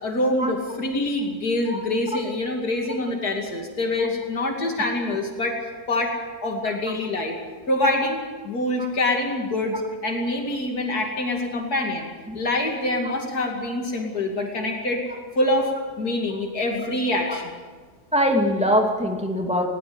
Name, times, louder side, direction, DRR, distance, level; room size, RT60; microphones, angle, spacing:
voice 1, 0.0-5.6 5.9-6.1 6.4-7.3 7.7-9.7 10.0-15.0 15.3-15.7 16.0-17.6, left 1 dB, 85° left, 1 dB, 3.3 m, -25 dB
voice 2, 18.1-19.7, equal, 5° right, 1 dB, 2.5 m, -22 dB
19.5 x 18.5 x 7.9 m, 1.4 s
omnidirectional pair, 1.6 m